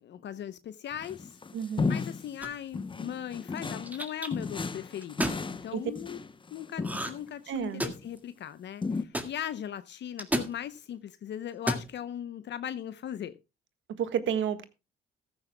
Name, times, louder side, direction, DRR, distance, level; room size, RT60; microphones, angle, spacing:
voice 1, 0.0-1.4 1.9-6.2 6.5-13.3, left 10 dB, 65° left, 0.7 m, -39 dB
sound 1, 0.9-2.4 2.7-4.0 4.3-7.2 7.8-8.1 8.8-9.0, left 4 dB, 25° left, 0.8 m, -34 dB
voice 2, 1.5-2.0 5.7-5.8 7.5-7.8 14.0-14.7, right 8 dB, 75° right, 1.5 m, -30 dB
sound 2, 2.4-2.8 3.6-4.3 5.0-5.4 6.8-7.3 7.6-8.2 9.1-9.3 10.2-10.5 11.5-11.9, right 1 dB, 10° right, 1.9 m, -31 dB
14.5 x 14.0 x 2.2 m
cardioid pair, 90°, 20 cm